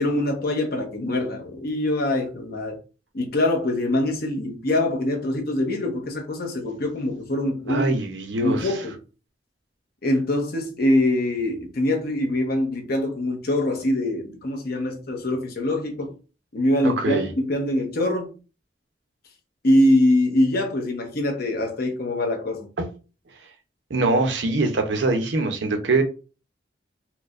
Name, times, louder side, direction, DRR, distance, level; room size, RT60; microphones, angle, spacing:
voice 1, 0.0-2.8 3.1-7.9 8.4-9.0 10.0-16.1 16.5-18.3 19.6-22.7, left 1 dB, 60° left, 0.9 m, -23 dB
voice 2, 7.7-8.7 16.8-17.3 22.8-22.9 23.9-26.0, right 2 dB, 90° right, 0.7 m, -23 dB
4.4 x 2.2 x 2.5 m
head